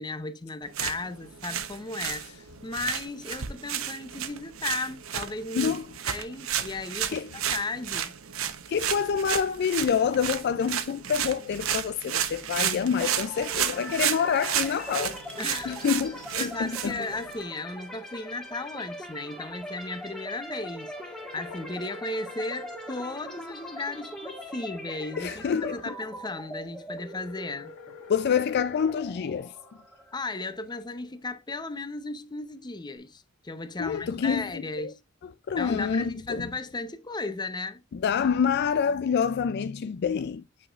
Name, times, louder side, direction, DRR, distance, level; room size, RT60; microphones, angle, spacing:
voice 1, 0.0-5.7 6.0-8.2 15.4-15.9 16.4-27.7 30.1-35.0 35.6-37.8, left 3 dB, 20° left, 0.7 m, -35 dB
sound 1, 0.6-17.4, right 10 dB, 80° right, 0.9 m, -32 dB
voice 2, 8.7-15.2 15.7-17.0 25.2-25.8 28.1-29.5 33.8-34.9 35.5-36.5 38.0-40.4, left 7 dB, 55° left, 0.3 m, -27 dB
sound 2, 13.0-30.8, equal, 5° left, 1.6 m, -42 dB
sound 3, 21.0-23.1 27.0-29.1, left 4 dB, 80° left, 1.6 m, -46 dB
8.5 x 4.9 x 2.4 m
head